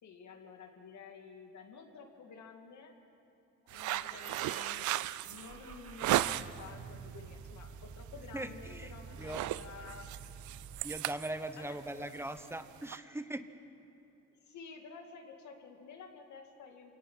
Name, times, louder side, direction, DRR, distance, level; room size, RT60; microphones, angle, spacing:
voice 1, 0.0-2.9 3.6-10.1 11.6-12.1 14.3-16.9, left 5 dB, 70° left, 3 dB, 2.5 m, -51 dB
sound 1, 3.7-6.7 7.1-7.5 7.8-8.1 8.4-8.8 9.0-13.0, right 14 dB, 80° right, 0.5 m, -35 dB
sound 2, 4.1-4.9, left 3 dB, 25° left, 4.2 m, -53 dB
Car / Engine starting, 5.4-10.8, right 5 dB, 50° right, 1.3 m, -49 dB
voice 2, 8.3-9.4 10.8-13.5, right 1 dB, 10° right, 10 dB, 1.1 m, -40 dB
28.0 x 18.0 x 5.8 m, 2.8 s
cardioid pair, 90°, 30 cm